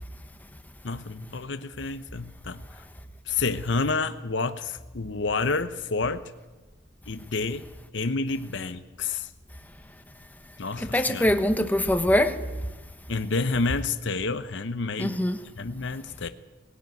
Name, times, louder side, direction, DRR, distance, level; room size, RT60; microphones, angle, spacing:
voice 1, 0.8-2.9 3.3-6.3 7.1-7.6 7.9-9.3 10.6-11.3 13.1-15.2 15.6-16.3, left 3 dB, 60° left, 0.8 m, -29 dB
voice 2, 10.8-12.4 15.0-15.4, left 1 dB, 10° left, 1.2 m, -23 dB
20.0 x 17.0 x 9.3 m
head